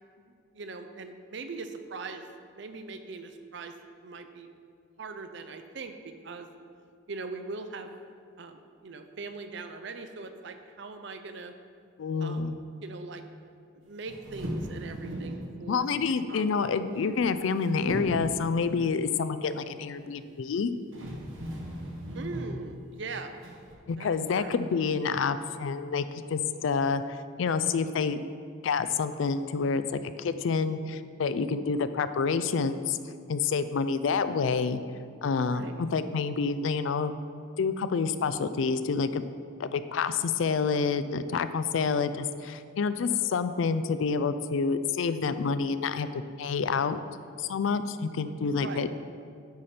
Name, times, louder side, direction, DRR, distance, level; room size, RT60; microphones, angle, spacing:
voice 1, 0.2-2.2 2.6-3.8 4.0-4.5 5.0-6.5 7.1-7.9 8.4-11.5 12.2-12.5 12.8-13.2 13.7-16.0 16.3-16.5 22.1-23.3 24.0-24.1 24.4-24.6 35.4-35.8 48.4-48.9, right 3 dB, 60° right, 8 dB, 0.5 m, -41 dB
voice 2, 12.0-12.6 15.7-20.7 23.9-28.2 28.6-33.0 33.3-34.8 35.2-37.2 37.6-39.2 39.6-47.0 47.4-48.9, left 5 dB, 70° left, 12 dB, 0.4 m, -28 dB
sound 1, 14.1-15.5 16.9-17.6 17.9-18.4 20.4-20.5 20.9-22.6 23.4-23.7, equal, 75° right, 1.3 m, -37 dB
9.3 x 4.3 x 5.0 m, 2.3 s
head